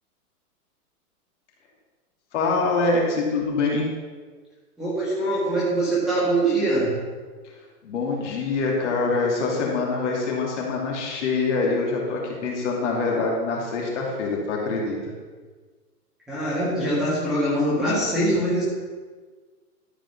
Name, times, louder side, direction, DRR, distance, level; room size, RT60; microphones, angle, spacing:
voice 1, 2.3-3.9 7.8-15.1, left 3 dB, 50° left, -2 dB, 3.0 m, -25 dB
voice 2, 4.8-6.9 16.3-18.6, right 1 dB, ahead, -11 dB, 1.6 m, -23 dB
13.0 x 5.0 x 5.6 m, 1.4 s
hypercardioid pair, 165°, 46 cm